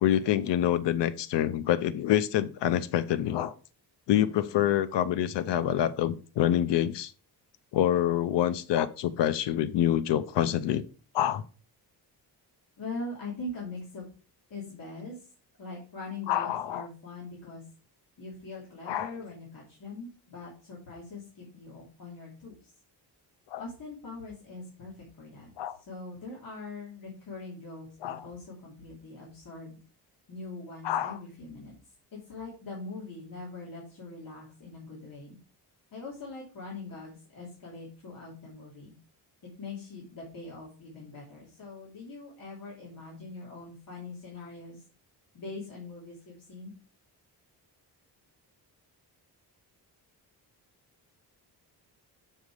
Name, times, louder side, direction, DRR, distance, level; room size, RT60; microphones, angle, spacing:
voice 1, 0.0-3.5 4.1-7.1 7.7-10.9 11.1-11.4 16.3-16.9 18.9-19.1 23.5-23.6 25.6-25.8 28.0-28.3 30.8-31.2, left 11 dB, 85° left, 0.6 m, -26 dB
voice 2, 12.8-14.1 14.5-15.3 15.6-17.6 18.2-22.7 23.6-25.5 25.9-29.8 30.3-31.7 32.3-35.4 35.9-38.9 39.6-44.8 45.3-46.7, left 3 dB, 55° left, 2.8 m, -42 dB
7.4 x 5.6 x 4.8 m
wide cardioid pair, 160°, 41 cm